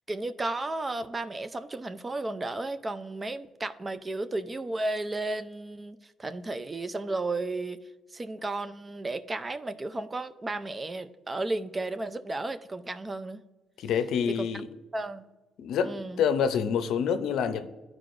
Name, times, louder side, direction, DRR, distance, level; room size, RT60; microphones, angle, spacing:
voice 1, 0.1-7.8 8.1-13.4 14.4-14.5 14.9-15.3 15.8-16.2, right 2 dB, 25° right, 0.5 m, -33 dB
voice 2, 13.8-14.7 15.6-17.7, left 7 dB, 80° left, 0.6 m, -27 dB
12.0 x 4.8 x 2.5 m
cardioid pair, 90°, 0 cm